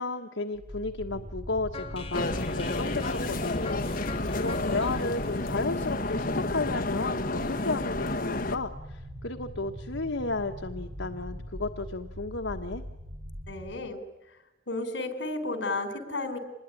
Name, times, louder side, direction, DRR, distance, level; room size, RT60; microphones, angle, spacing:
voice 1, 0.0-12.8, left 3 dB, 85° left, 5 dB, 1.3 m, -33 dB
sound 1, 0.5-13.8, equal, 75° right, 6.0 m, -41 dB
sound 2, 1.7-6.7, left 3 dB, 30° left, 1.7 m, -42 dB
sound 3, 2.1-8.6, left 2 dB, 50° left, 1.6 m, -31 dB
voice 2, 13.5-14.0 14.7-16.4, left 2 dB, 70° left, 9 dB, 4.1 m, -32 dB
26.0 x 21.0 x 9.9 m, 0.95 s
head